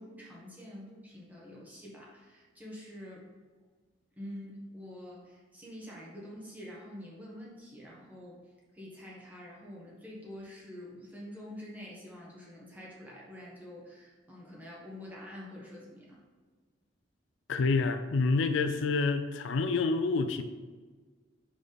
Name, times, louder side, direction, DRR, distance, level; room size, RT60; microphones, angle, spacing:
voice 1, 0.0-3.3 4.1-8.4 8.7-16.2, left 1 dB, 10° right, -5 dB, 1.4 m, -46 dB
voice 2, 17.5-20.4, left 4 dB, 80° left, 8 dB, 0.4 m, -28 dB
5.1 x 5.0 x 4.0 m, 1.4 s
head